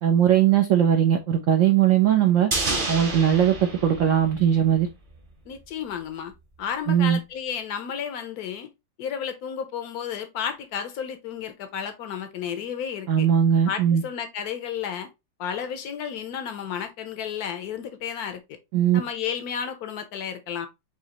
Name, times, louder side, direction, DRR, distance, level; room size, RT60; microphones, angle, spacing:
voice 1, 0.0-2.5 2.9-3.5 3.8-4.9 6.9-7.2 13.1-14.0 18.7-19.0, right 9 dB, 80° right, 0.7 m, -19 dB
sound 1, 2.5-4.9 5.2-5.3, right 2 dB, 40° right, 0.8 m, -29 dB
voice 2, 5.5-6.3 6.6-8.7 9.0-13.3 13.7-15.1 15.4-18.6 18.9-20.7, left 8 dB, 65° left, 1.0 m, -32 dB
5.0 x 2.8 x 2.8 m
omnidirectional pair, 2.0 m